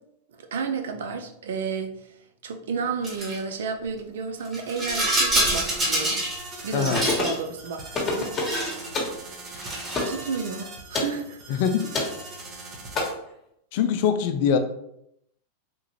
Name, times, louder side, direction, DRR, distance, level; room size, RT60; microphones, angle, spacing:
voice 1, 0.4-1.9 2.4-6.2 6.6-8.8 10.0-11.6, right 5 dB, 75° right, 7 dB, 0.5 m, -32 dB
Rattle, 3.0-3.4 4.4-6.4 6.7-7.4 8.2-8.9 9.5-10.1, right 1 dB, 20° right, 1.4 m, -26 dB
sound 1, 5.4-13.1, right 2 dB, 40° right, 0.9 m, -41 dB
voice 2, 6.7-7.1 11.5-11.9 13.7-14.6, left 7 dB, 60° left, 9 dB, 0.4 m, -23 dB
sound 2, 6.9-7.4 7.9-8.6 8.9-9.2 9.9-10.2 10.9-11.2 11.9-12.2 12.9-13.0, left 2 dB, 30° left, 1.2 m, -26 dB
3.6 x 2.4 x 2.9 m, 0.77 s
hypercardioid pair, 105°, 0 cm